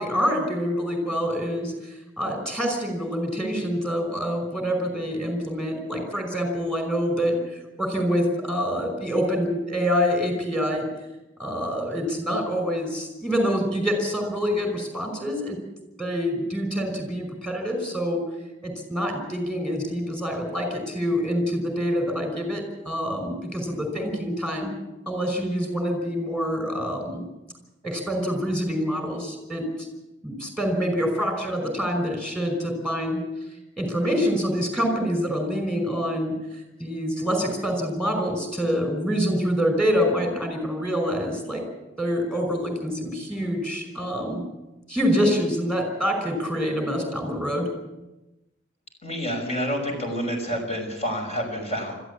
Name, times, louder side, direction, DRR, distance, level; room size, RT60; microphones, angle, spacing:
voice 1, 0.0-10.9 11.4-15.6 16.0-18.3 18.6-24.7 25.1-27.2 27.8-29.7 30.2-33.2 33.8-36.4 36.8-41.6 42.0-44.4 44.9-47.7, equal, 5° left, 5 dB, 5.5 m, -26 dB
voice 2, 49.0-51.9, equal, 35° left, 3 dB, 5.9 m, -28 dB
21.5 x 14.0 x 8.5 m, 0.98 s
head